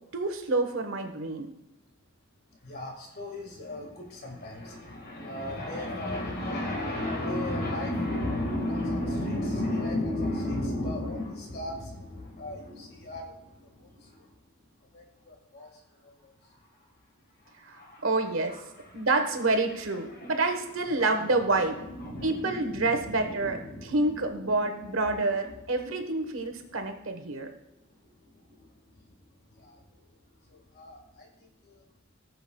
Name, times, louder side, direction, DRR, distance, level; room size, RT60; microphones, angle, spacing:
voice 1, 0.1-1.5 17.6-18.6 18.9-21.8 22.2-23.6 23.9-27.5, right 2 dB, 80° right, 6 dB, 1.2 m, -28 dB
voice 2, 2.6-14.5 14.9-16.9 17.4-19.1 19.7-25.6 26.3-26.4 27.3-30.2 30.4-31.8, left 1 dB, 50° left, 1 dB, 1.8 m, -36 dB
18.5 x 6.9 x 2.3 m, 0.94 s
head